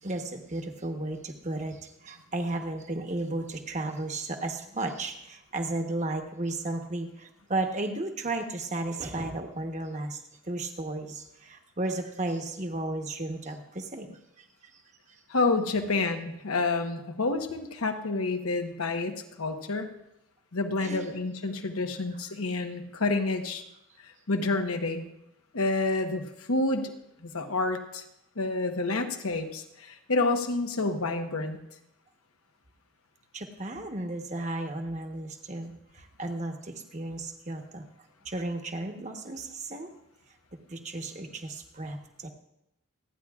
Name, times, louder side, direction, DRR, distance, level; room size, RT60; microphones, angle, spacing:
voice 1, 0.0-14.4 14.7-14.8 15.1-15.2 20.8-21.1 33.3-37.9 38.2-39.9 40.7-42.3, right 2 dB, 35° right, 4 dB, 1.1 m, -34 dB
voice 2, 15.3-19.9 20.5-23.6 24.0-25.0 25.5-26.9 27.2-28.0 28.4-31.6, left 3 dB, 90° left, 5 dB, 1.1 m, -29 dB
27.0 x 9.8 x 2.4 m, 0.84 s
head